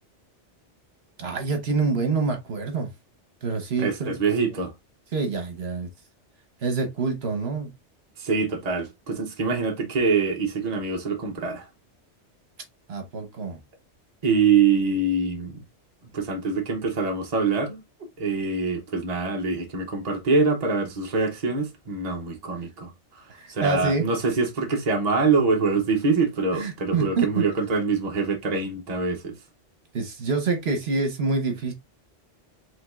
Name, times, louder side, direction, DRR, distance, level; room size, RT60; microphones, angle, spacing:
voice 1, 1.2-2.9 3.4-4.2 5.1-5.9 6.6-7.7 12.9-13.6 23.3-24.1 26.5-27.5 29.9-31.7, right 4 dB, 60° right, 1.3 m, -26 dB
voice 2, 3.8-4.7 8.2-11.6 14.2-15.6 16.1-17.8 18.2-23.2 23.5-29.4, right 4 dB, 35° right, 1.0 m, -24 dB
5.1 x 3.6 x 2.5 m
omnidirectional pair, 1.2 m